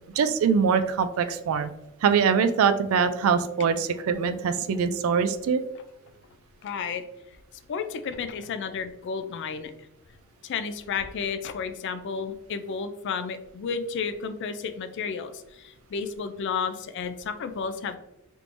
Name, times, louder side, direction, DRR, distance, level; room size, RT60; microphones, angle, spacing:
voice 1, 0.2-1.7 2.0-5.6, right 6 dB, 65° right, 11 dB, 0.3 m, -23 dB
voice 2, 6.6-7.0 7.7-9.7 10.4-18.0, left 5 dB, 55° left, 10 dB, 0.3 m, -32 dB
3.5 x 3.0 x 2.5 m, 0.88 s
head